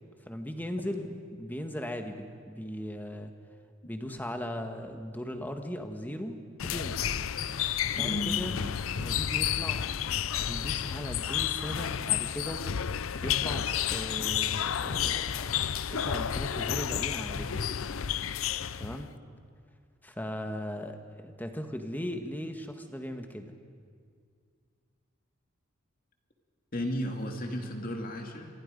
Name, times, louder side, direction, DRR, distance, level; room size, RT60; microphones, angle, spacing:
voice 1, 0.3-3.3 3.8-7.1 8.0-8.5 8.9-9.9 10.4-12.6 13.2-13.6 13.9-15.6 15.9-17.6 18.8-19.1 20.0-23.5, equal, 10° left, 6 dB, 1.4 m, -38 dB
sound 1, 6.6-19.1, left 9 dB, 80° left, 0.6 m, -31 dB
voice 2, 8.0-8.3 26.7-28.5, equal, 45° left, 3 dB, 2.5 m, -33 dB
28.5 x 23.5 x 5.3 m, 2.1 s
head